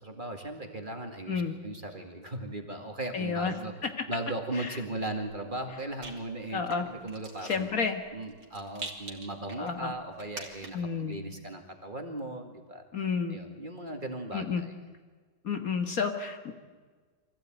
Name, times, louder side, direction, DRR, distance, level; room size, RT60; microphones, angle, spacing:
voice 1, 0.0-3.7 4.1-7.7 8.1-12.8 13.3-14.8, right 2 dB, 30° right, 4 dB, 2.3 m, -38 dB
voice 2, 3.1-3.5 4.6-4.7 6.5-6.9 7.5-8.0 9.6-9.9 10.7-11.2 12.9-13.4 14.3-14.6 15.4-16.5, left 5 dB, 55° left, 6 dB, 1.8 m, -30 dB
Rattle, 4.9-11.0, right 3 dB, 55° right, 3.2 m, -47 dB
24.5 x 15.5 x 9.2 m, 1.4 s
omnidirectional pair, 1.9 m